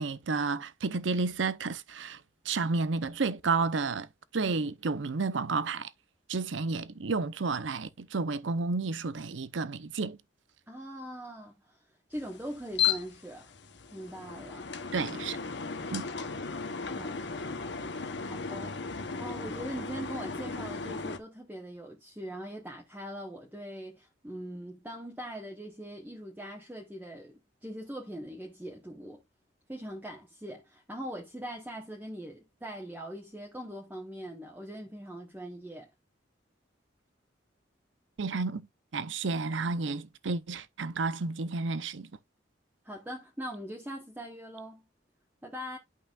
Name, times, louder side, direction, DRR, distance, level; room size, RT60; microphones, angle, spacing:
voice 1, 0.0-2.2 2.4-4.1 4.3-5.9 6.3-10.2 14.9-15.4 15.9-16.1 38.2-38.7 38.9-42.1, right 4 dB, 80° right, 0.7 m, -31 dB
voice 2, 10.7-11.8 12.1-13.5 13.9-14.7 16.8-17.5 18.2-18.8 19.2-29.2 29.7-35.9 42.8-44.9 45.4-45.8, equal, 10° right, 1.1 m, -41 dB
sound 1, 12.1-21.2, left 6 dB, 65° left, 1.0 m, -35 dB
10.5 x 5.6 x 2.4 m
head